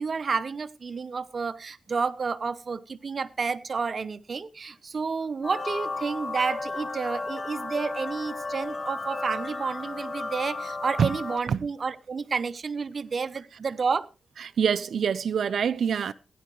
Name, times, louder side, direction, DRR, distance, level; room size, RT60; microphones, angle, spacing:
voice 1, 0.0-14.1, right 5 dB, 50° right, 0.8 m, -30 dB
sound 1, 5.4-11.4, left 3 dB, 40° left, 0.9 m, -34 dB
voice 2, 14.4-16.1, right 7 dB, 75° right, 0.5 m, -25 dB
16.5 x 10.0 x 3.1 m
cardioid pair, 95°, 0 cm